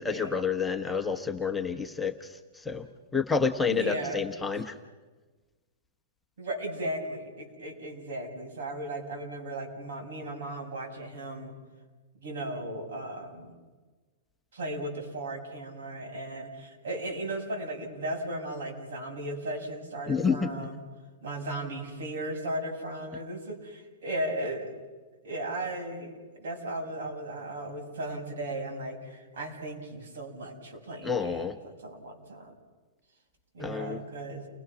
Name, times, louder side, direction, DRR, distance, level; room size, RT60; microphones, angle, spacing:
voice 1, 0.0-2.3 2.6-2.9 3.1-4.7 20.1-20.5 31.0-31.6 33.6-34.0, left 5 dB, 5° left, 3 dB, 1.0 m, -29 dB
voice 2, 3.7-4.2 6.4-11.5 12.2-13.5 14.5-20.8 21.2-24.7 25.2-32.5 33.5-34.5, right 1 dB, 80° right, 2 dB, 7.2 m, -36 dB
29.5 x 21.0 x 6.2 m, 1.3 s
supercardioid pair, 170°, 0 cm